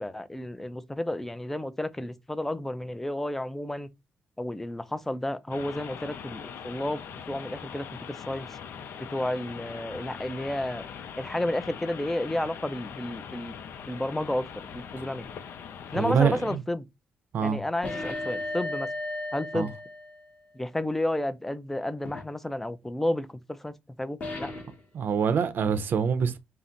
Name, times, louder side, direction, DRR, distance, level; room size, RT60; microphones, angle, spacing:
voice 1, 0.0-3.9 4.4-8.5 9.0-10.8 11.2-13.6 13.9-15.3 15.9-16.8 17.4-18.9 19.3-19.7 20.5-24.5, left 1 dB, 5° left, 0.4 m, -31 dB
sound 1, 5.5-16.6, left 7 dB, 75° left, 0.5 m, -42 dB
voice 2, 15.9-16.6 17.3-17.6 19.5-19.7 24.9-26.4, right 7 dB, 60° right, 0.6 m, -25 dB
sound 2, 17.8-20.4 22.0-22.3 24.2-24.8, left 2 dB, 45° left, 1.2 m, -35 dB
5.7 x 2.0 x 3.7 m
cardioid pair, 130°, 4 cm